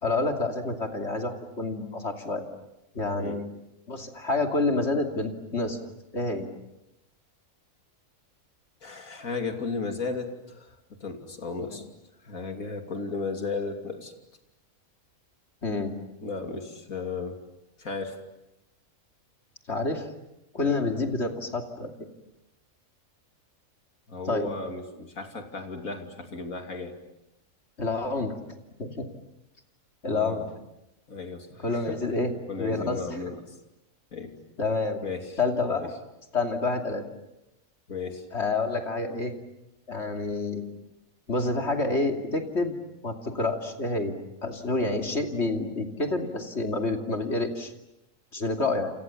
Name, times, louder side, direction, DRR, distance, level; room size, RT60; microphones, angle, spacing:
voice 1, 0.0-2.4 2.9-3.5 3.9-5.8 6.1-6.5 11.6-11.7 15.6-15.9 19.7-20.1 20.5-21.9 24.3-24.5 27.8-28.3 28.8-29.1 30.0-30.5 31.6-32.3 32.6-33.0 34.6-35.0 35.4-35.9 36.3-37.0 38.3-39.3 39.9-40.6 41.3-42.7 43.0-44.2 44.4-47.7 48.3-48.9, left 3 dB, 50° left, 4 dB, 3.0 m, -28 dB
voice 2, 8.8-11.8 12.2-14.1 16.2-17.4 17.8-18.2 20.6-20.7 24.1-27.0 30.0-30.5 31.1-32.0 32.5-33.5 34.1-34.4 35.0-35.4 35.7-35.9 37.9-38.2, left 4 dB, 75° left, 5 dB, 3.3 m, -35 dB
29.0 x 28.5 x 7.2 m, 0.90 s
omnidirectional pair, 1.5 m